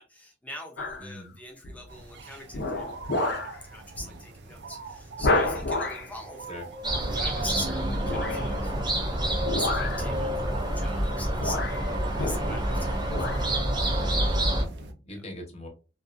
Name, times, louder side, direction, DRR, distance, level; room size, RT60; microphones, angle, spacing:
voice 1, 0.0-8.7 9.5-11.8 12.2-13.4 15.1-15.2, left 1 dB, 10° left, 0.7 m, -43 dB
sound 1, 0.8-1.1 1.6-2.0 2.5-3.6 4.0-4.1 4.5-4.6 5.2-6.1 8.0-8.5 9.4-10.1 11.0-11.1 11.4-12.7 13.0-13.5 14.0-14.1, left 2 dB, 65° left, 0.6 m, -29 dB
voice 2, 1.0-1.4 6.5-6.6 14.5-15.7, left 1 dB, 35° left, 0.9 m, -41 dB
sound 2, 1.9-14.9, right 1 dB, 70° right, 0.5 m, -41 dB
sound 3, 6.8-14.6, right 1 dB, 25° right, 0.7 m, -28 dB
2.6 x 2.3 x 2.4 m
head